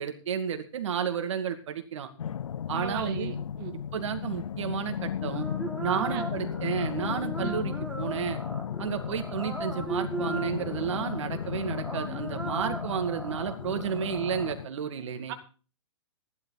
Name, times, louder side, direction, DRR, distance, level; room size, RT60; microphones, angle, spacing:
voice 1, 0.0-2.1 2.7-3.3 3.9-5.5 5.8-8.4 8.8-15.3, right 8 dB, 70° right, 7 dB, 2.3 m, -32 dB
sound 1, 2.2-14.7, left 8 dB, 90° left, 0.5 m, -35 dB
voice 2, 2.7-3.8 5.9-6.2 7.4-7.6 15.3-15.4, right 11 dB, 40° right, 5 dB, 2.3 m, -36 dB
sound 2, 5.2-14.5, right 2 dB, 5° right, 4.0 m, -38 dB
16.0 x 11.5 x 4.1 m, 0.37 s
hypercardioid pair, 135°, 16 cm